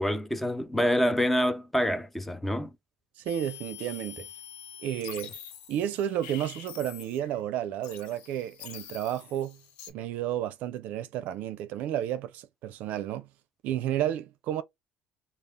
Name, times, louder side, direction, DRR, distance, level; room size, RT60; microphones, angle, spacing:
voice 1, 0.0-2.7, equal, 5° left, 0.4 m, -26 dB
voice 2, 3.2-4.3 4.8-5.3 5.7-9.6 9.9-13.3 13.6-14.6, right 11 dB, 60° right, 0.4 m, -32 dB
sound 1, 3.3-7.4 7.8-9.9, left 10 dB, 90° left, 1.1 m, -45 dB
3.6 x 2.4 x 3.3 m
cardioid pair, 150°, 3 cm